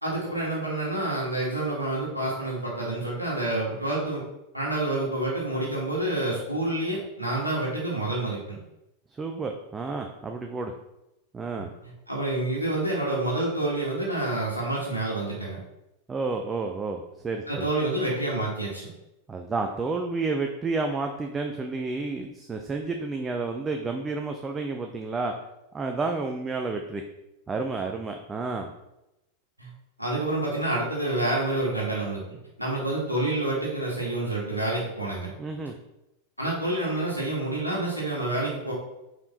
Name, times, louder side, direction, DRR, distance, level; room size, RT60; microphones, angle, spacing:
voice 1, 0.0-4.2 4.5-8.5 11.5-11.6 12.1-15.6 17.5-18.9 29.6-29.7 30.0-32.2 32.6-35.3 36.4-38.7, right 2 dB, 85° right, -5 dB, 1.5 m, -28 dB
voice 2, 9.2-10.7 11.3-11.7 16.1-17.7 19.3-25.3 25.7-27.0 27.5-28.7 35.4-35.7, right 3 dB, 15° right, 3 dB, 0.6 m, -30 dB
5.3 x 4.6 x 4.0 m, 0.91 s
figure-of-eight pair, 90°, 0 cm